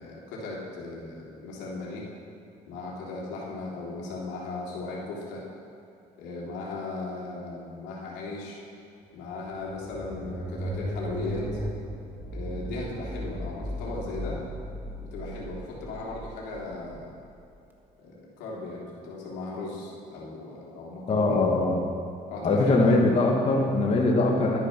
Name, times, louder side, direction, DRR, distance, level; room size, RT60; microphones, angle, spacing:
voice 1, 0.0-2.1 2.7-5.4 6.2-8.6 9.1-11.5 12.3-14.4 15.1-17.1 18.0-21.5 22.3-23.0, left 3 dB, 90° left, -4 dB, 3.2 m, -37 dB
sound 1, 9.2-17.6, right 1 dB, 10° right, 1.6 m, -36 dB
voice 2, 21.1-21.8 22.4-24.6, left 2 dB, 35° left, -1 dB, 1.6 m, -22 dB
12.0 x 10.0 x 6.0 m, 2.7 s
cardioid pair, 110°, 17 cm